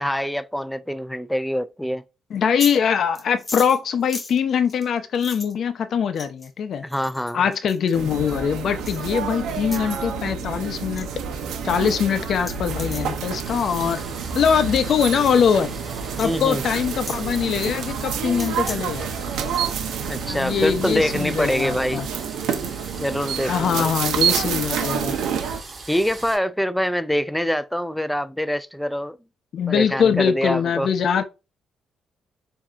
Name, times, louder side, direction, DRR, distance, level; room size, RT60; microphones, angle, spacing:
voice 1, 0.0-2.0 6.8-7.4 16.2-16.6 20.1-22.0 23.0-23.9 25.9-29.2 29.7-30.9, equal, 5° left, 0.3 m, -25 dB
voice 2, 2.3-6.8 7.3-11.1 11.6-14.0 14.3-15.7 16.2-19.1 20.3-22.1 23.4-25.2 29.5-31.2, left 7 dB, 60° left, 0.6 m, -22 dB
sound 1, 2.4-2.8 3.1-5.5 6.2-6.5 6.9-8.0 8.9-9.0 9.6-9.8 10.2-10.5 10.7-11.0 11.5-11.6 12.0-12.1 12.3-13.1 13.8-14.0 14.8-15.0 15.3-15.4 16.2-16.3 17.1-17.2 18.3-18.8 19.2-19.9, left 2 dB, 20° left, 1.2 m, -36 dB
sound 2, 7.9-25.6, right 7 dB, 85° right, 0.7 m, -28 dB
sound 3, 13.4-26.4, right 3 dB, 35° right, 2.1 m, -40 dB
7.3 x 2.8 x 2.4 m
cardioid pair, 90°, 0 cm